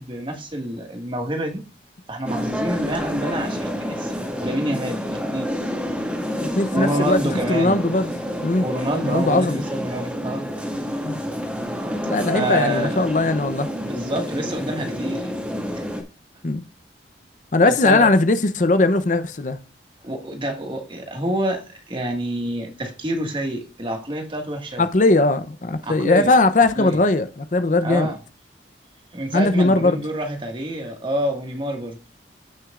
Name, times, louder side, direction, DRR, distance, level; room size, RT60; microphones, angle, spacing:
voice 1, 0.0-1.6 2.1-4.1 4.4-5.5 6.7-7.7 8.6-10.5 12.3-13.0 13.8-15.3 15.7-15.8 17.6-18.1 20.0-24.9 25.8-26.3 26.7-27.0 27.8-28.2 29.1-32.0, right 1 dB, 30° right, 1.8 m, -27 dB
sound 1, 2.2-16.0, equal, 10° right, 1.9 m, -28 dB
voice 2, 6.6-7.2 7.5-8.1 8.4-8.7 9.0-9.6 11.0-11.2 12.0-13.7 16.4-16.6 17.5-19.6 24.8-28.1 29.3-30.0, left 2 dB, 45° left, 0.6 m, -19 dB
15.5 x 6.2 x 2.5 m
head